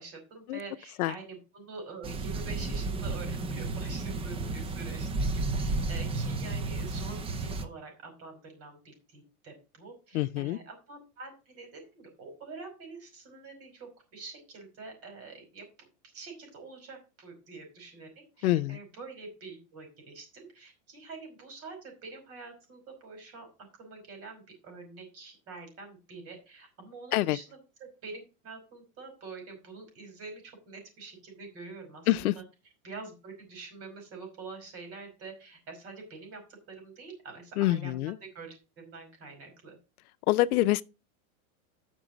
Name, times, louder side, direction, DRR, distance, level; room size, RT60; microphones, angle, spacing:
voice 1, 0.0-15.9 16.1-18.1 18.4-23.5 23.8-27.6 28.0-32.1 32.4-32.5 32.8-36.4 36.7-39.8, right 4 dB, 35° right, 5.2 m, -46 dB
sound 1, 2.0-7.6, right 3 dB, 15° right, 0.6 m, -32 dB
voice 2, 10.1-10.6 18.4-18.8 27.1-27.4 32.1-32.4 37.6-38.2 40.3-40.8, left 16 dB, 85° left, 0.7 m, -26 dB
10.0 x 6.1 x 5.1 m
supercardioid pair, 155°, 43 cm